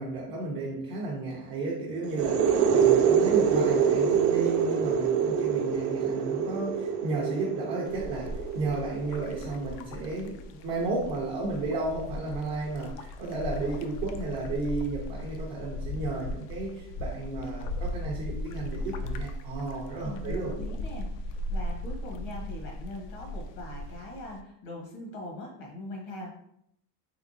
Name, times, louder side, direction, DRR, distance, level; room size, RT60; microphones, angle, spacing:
voice 1, 0.0-20.6, right 3 dB, 30° right, -4 dB, 0.3 m, -33 dB
sound 1, 2.0-9.6, right 7 dB, 90° right, 0.7 m, -25 dB
sound 2, 7.9-24.4, left 1 dB, 85° left, 0.6 m, -37 dB
voice 2, 20.0-26.3, left 2 dB, 60° left, 0 dB, 1.0 m, -41 dB
3.6 x 3.2 x 2.5 m, 0.75 s
cardioid pair, 165°, 46 cm